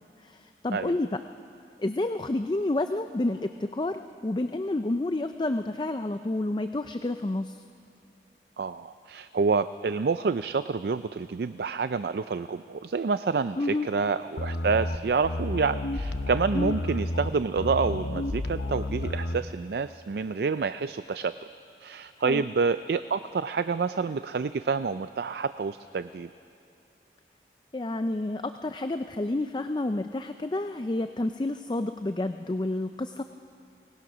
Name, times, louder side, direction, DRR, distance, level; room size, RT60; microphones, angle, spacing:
voice 1, 0.2-1.1 1.8-7.6 13.6-13.9 16.5-16.7 22.2-22.5 27.7-33.2, left 2 dB, 25° left, 9 dB, 0.4 m, -29 dB
voice 2, 8.6-21.3 21.8-26.3, right 5 dB, 65° right, 12 dB, 0.4 m, -28 dB
sound 1, 14.4-19.4, left 1 dB, 85° left, 0.8 m, -31 dB
22.5 x 19.0 x 6.1 m, 2.6 s
head